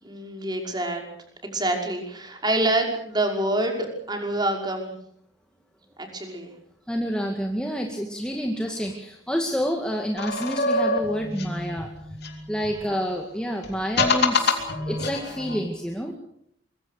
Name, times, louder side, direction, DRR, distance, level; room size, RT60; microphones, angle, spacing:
voice 1, 0.0-1.0 1.4-4.9 6.0-6.5 12.9-13.2, right 1 dB, 20° right, 2 dB, 5.6 m, -27 dB
voice 2, 6.9-11.9 12.5-16.1, equal, 5° left, 2 dB, 2.2 m, -28 dB
sound 1, 10.2-12.9 13.6-15.6, left 3 dB, 55° left, 3.9 m, -26 dB
25.0 x 23.0 x 6.6 m, 0.70 s
head